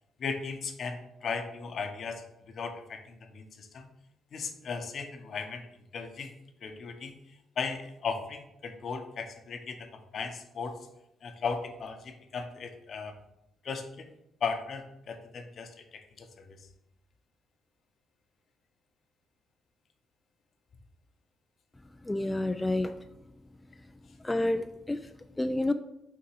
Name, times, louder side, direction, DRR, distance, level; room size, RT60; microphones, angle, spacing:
voice 1, 0.2-3.0 3.3-3.9 4.3-5.7 5.9-6.3 6.6-7.1 7.6-10.8 11.2-13.1 13.6-14.1 14.4-16.6, left 5 dB, 55° left, 7 dB, 0.9 m, -37 dB
voice 2, 22.0-23.0 24.2-25.7, left 2 dB, 15° left, 8 dB, 0.3 m, -30 dB
6.0 x 3.6 x 4.8 m, 0.83 s
cardioid pair, 90°, 0 cm